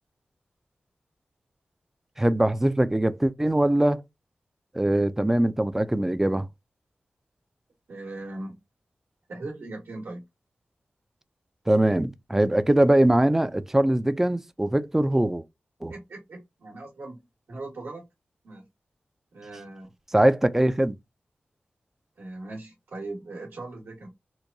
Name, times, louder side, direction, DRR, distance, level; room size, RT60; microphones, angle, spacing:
voice 1, 2.2-4.0 4.7-6.5 11.7-15.4 15.8-15.9 20.1-21.0, right 1 dB, 10° right, 0.3 m, -22 dB
voice 2, 7.9-8.5 9.3-10.2 15.9-18.0 18.4-18.6 19.3-19.9 22.2-24.1, right 2 dB, 80° right, 1.5 m, -39 dB
4.5 x 2.3 x 2.6 m
wide cardioid pair, 125°, 4 cm